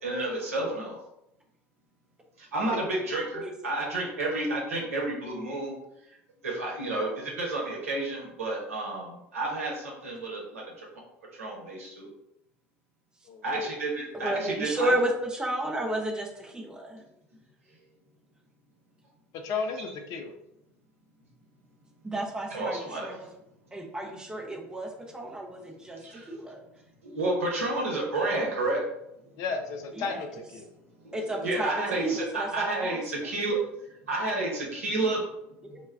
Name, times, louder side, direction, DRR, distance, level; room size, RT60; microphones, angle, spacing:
voice 1, 0.0-1.0 2.4-5.7 6.4-10.9 11.3-12.1 13.4-14.9 22.5-23.1 26.0-26.3 27.0-28.8 31.0-33.6 34.1-35.2 35.7-35.8, right 2 dB, 80° right, -2 dB, 0.8 m, -31 dB
voice 2, 13.3-13.7 19.3-20.3 29.4-30.7, left 5 dB, 50° left, 4 dB, 0.4 m, -34 dB
voice 3, 14.1-17.0 22.0-23.3 23.7-26.6 29.9-30.2 31.1-31.7 32.0-33.0 35.6-35.8, right 1 dB, 10° right, 0 dB, 0.6 m, -32 dB
2.2 x 2.1 x 3.4 m, 0.81 s
figure-of-eight pair, 70°, 7 cm